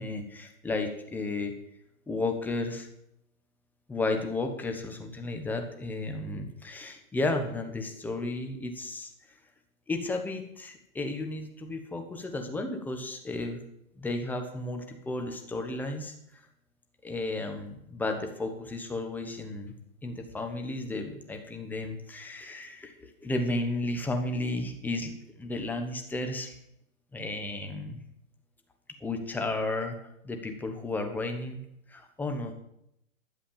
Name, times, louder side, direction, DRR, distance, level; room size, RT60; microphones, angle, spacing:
voice 1, 0.0-1.5 2.1-2.9 3.9-9.1 9.9-13.6 14.0-16.4 17.0-19.7 20.0-26.6 27.1-28.0 29.0-30.0 30.2-31.6 31.9-32.5, left 2 dB, 5° left, 4 dB, 1.0 m, -33 dB
12.0 x 7.4 x 7.2 m, 0.78 s
hypercardioid pair, 145°, 41 cm